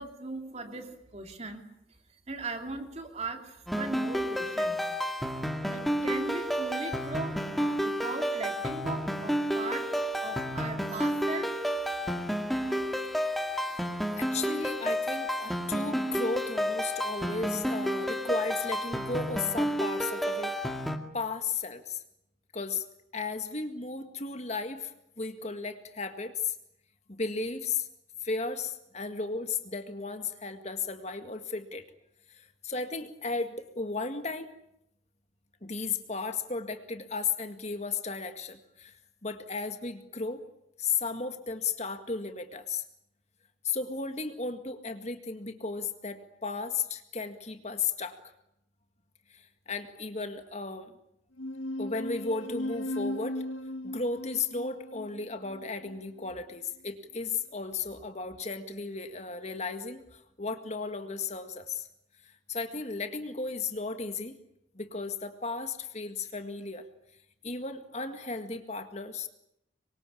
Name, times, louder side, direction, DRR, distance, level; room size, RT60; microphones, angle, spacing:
voice 1, 0.0-1.6 2.3-4.8 5.7-11.5, right 3 dB, 35° right, 5 dB, 3.2 m, -39 dB
sound 1, 3.7-21.0, equal, ahead, 2.1 m, -31 dB
voice 2, 14.2-20.5 21.1-22.0 22.5-22.9 23.1-26.6 27.1-27.9 28.2-31.8 32.3-34.5 35.6-40.4 40.8-42.8 43.6-48.3 49.3-50.9 51.8-53.4 53.8-61.9 62.2-64.4 64.7-66.9 67.4-69.3, left 4 dB, 35° left, 7 dB, 1.9 m, -35 dB
sound 2, 51.4-56.3, left 1 dB, 80° left, 1.7 m, -37 dB
26.0 x 23.5 x 8.5 m, 0.79 s
head